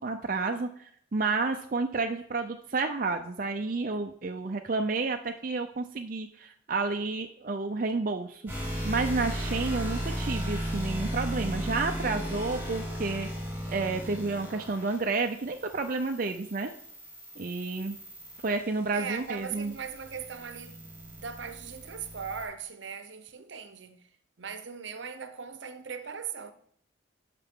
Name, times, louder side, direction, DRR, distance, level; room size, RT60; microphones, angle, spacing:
voice 1, 0.0-8.4 8.8-13.3 13.7-16.7 17.4-18.0 18.4-19.7, right 3 dB, 45° right, 0.5 m, -30 dB
sound 1, 8.5-22.4, equal, 10° right, 4.3 m, -36 dB
voice 2, 18.9-24.0 24.4-26.5, right 6 dB, 70° right, 0.8 m, -39 dB
11.5 x 5.8 x 3.6 m
head